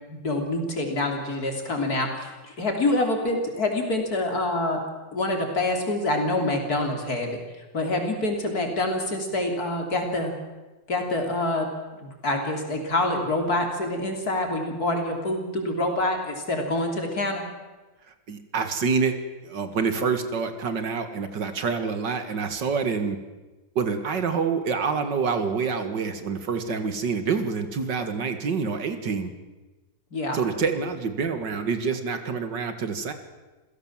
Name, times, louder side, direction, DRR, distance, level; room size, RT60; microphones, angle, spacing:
voice 1, 0.1-4.8 5.1-10.3 10.9-11.7 12.0-17.4 30.1-30.4, left 2 dB, 50° left, 3 dB, 3.9 m, -26 dB
voice 2, 18.3-19.2 19.4-23.2 23.8-29.3 30.3-33.1, right 5 dB, 70° right, 9 dB, 2.4 m, -27 dB
28.0 x 16.0 x 7.4 m, 1.2 s
omnidirectional pair, 2.0 m